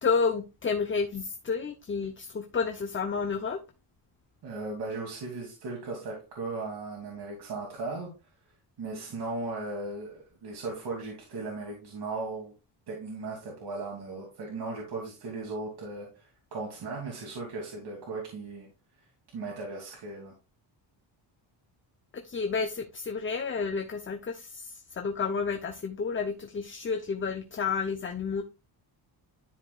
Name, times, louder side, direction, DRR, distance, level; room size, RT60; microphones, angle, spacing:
voice 1, 0.0-3.6 22.1-28.4, left 5 dB, 25° left, 0.8 m, -30 dB
voice 2, 4.4-8.1 8.8-12.5 12.9-18.7 19.3-20.3, right 3 dB, 60° right, 2.8 m, -37 dB
12.5 x 5.0 x 2.4 m
cardioid pair, 125°, 45 cm